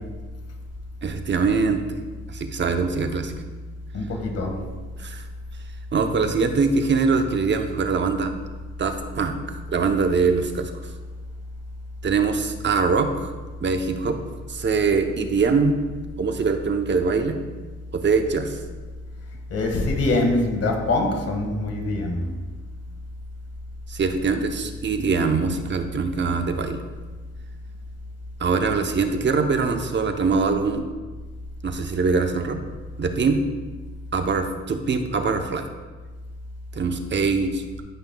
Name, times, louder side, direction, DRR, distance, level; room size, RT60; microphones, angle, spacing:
voice 1, 1.0-2.0 2.3-3.5 5.0-5.2 5.9-8.3 8.8-10.7 12.0-13.3 13.6-14.2 14.5-15.8 16.2-17.4 17.9-18.6 23.9-26.8 28.4-30.8 31.6-32.6 33.0-33.4 34.1-35.6 36.7-37.6, right 4 dB, 40° right, 6 dB, 0.8 m, -23 dB
voice 2, 3.9-4.6 19.5-22.2, left 2 dB, 55° left, 2 dB, 1.8 m, -24 dB
16.0 x 5.7 x 2.3 m, 1.3 s
cardioid pair, 90°, 30 cm